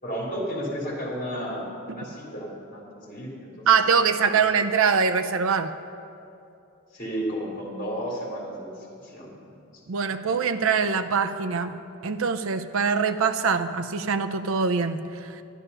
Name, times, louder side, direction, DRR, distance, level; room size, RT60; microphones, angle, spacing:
voice 1, 0.0-3.7 4.2-4.4 6.9-9.3 10.5-10.6, equal, 40° left, -4 dB, 3.1 m, -33 dB
voice 2, 3.7-5.7 9.9-11.8 12.0-15.4, right 5 dB, 65° right, 8 dB, 0.5 m, -23 dB
11.0 x 11.0 x 5.5 m, 2.7 s
head